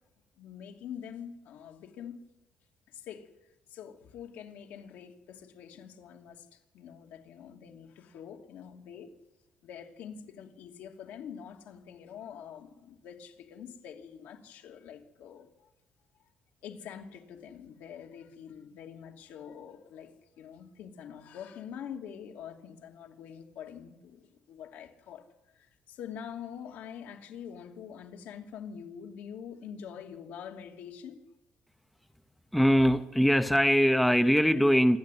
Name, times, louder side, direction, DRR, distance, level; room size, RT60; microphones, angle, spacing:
voice 1, 0.4-2.2 2.9-3.3 3.7-9.1 9.6-15.7 16.6-25.2 25.5-31.2, left 8 dB, 75° left, 2.9 m, -45 dB
voice 2, 32.5-35.0, equal, ahead, 0.7 m, -22 dB
27.5 x 13.0 x 9.5 m
cardioid pair, 165°, 3 cm